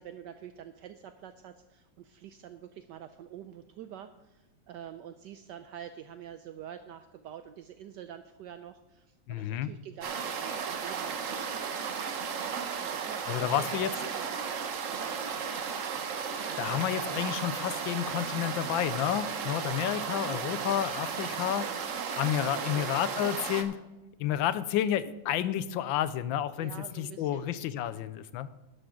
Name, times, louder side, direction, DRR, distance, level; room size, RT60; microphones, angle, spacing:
voice 1, 0.0-11.7 12.8-15.3 19.9-20.4 22.4-23.2 23.5-23.6 26.6-27.5, right 10 dB, 75° right, 9 dB, 1.1 m, -47 dB
voice 2, 9.3-9.7 13.3-13.9 16.6-21.9 22.2-23.8 24.2-28.5, left 11 dB, 80° left, 15 dB, 1.4 m, -30 dB
sound 1, 10.0-23.6, right 6 dB, 50° right, 1.1 m, -34 dB
11.5 x 11.0 x 3.8 m, 1.0 s
omnidirectional pair, 2.1 m